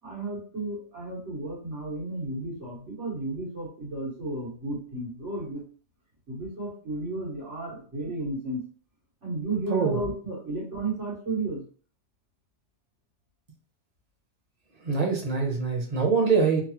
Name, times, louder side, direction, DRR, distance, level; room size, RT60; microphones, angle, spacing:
voice 1, 0.0-5.6 6.3-8.6 9.2-11.6, right 2 dB, 90° right, -7 dB, 2.2 m, -33 dB
voice 2, 14.8-16.6, right 5 dB, 40° right, 1 dB, 0.7 m, -24 dB
3.8 x 2.0 x 2.9 m, 0.42 s
omnidirectional pair, 1.2 m